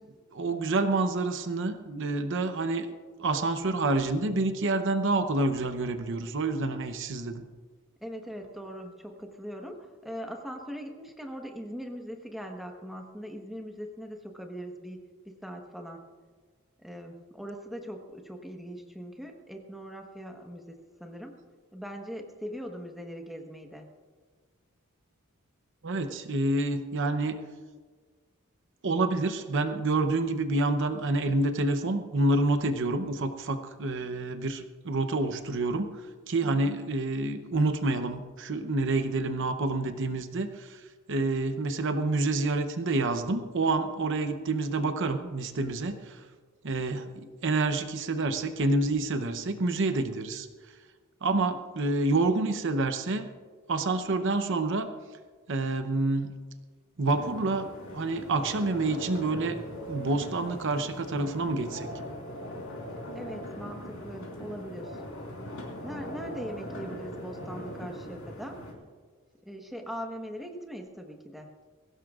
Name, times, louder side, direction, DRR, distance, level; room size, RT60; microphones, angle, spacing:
voice 1, 0.3-2.9 3.2-7.4 25.8-27.4 28.8-35.9 36.3-40.8 41.1-46.2 46.6-50.5 51.2-53.3 53.7-54.9 55.5-56.3 57.0-59.6 59.9-61.9, right 2 dB, 60° right, 8 dB, 0.8 m, -28 dB
voice 2, 8.0-16.0 16.8-21.4 21.7-23.9 36.4-36.8 63.1-65.0 65.8-68.6 69.4-71.5, equal, ahead, 2 dB, 1.3 m, -41 dB
sound 1, 57.1-68.7, equal, 65° left, 4.4 m, -40 dB
22.0 x 17.0 x 2.5 m, 1.5 s
head